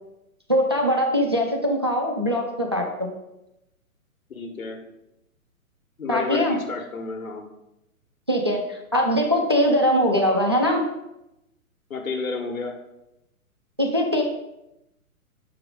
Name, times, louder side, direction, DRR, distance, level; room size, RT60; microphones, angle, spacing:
voice 1, 0.5-3.1 6.1-6.6 8.3-10.8 13.8-14.2, equal, 20° right, 1 dB, 0.3 m, -22 dB
voice 2, 4.3-4.8 6.0-7.4 11.9-12.7, left 4 dB, 70° left, 3 dB, 1.4 m, -31 dB
6.2 x 4.8 x 5.0 m, 0.89 s
figure-of-eight pair, 125°, 43 cm